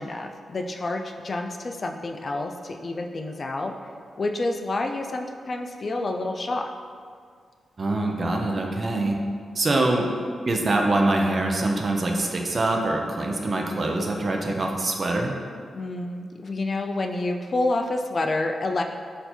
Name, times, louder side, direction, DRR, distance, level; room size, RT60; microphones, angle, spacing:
voice 1, 0.0-3.7 4.2-6.7 15.7-18.8, left 2 dB, 45° left, 4 dB, 0.3 m, -28 dB
voice 2, 7.8-9.2 9.5-10.1 10.4-15.3, right 2 dB, 45° right, 1 dB, 0.5 m, -24 dB
4.3 x 2.6 x 4.2 m, 2.1 s
cardioid pair, 80°, 0 cm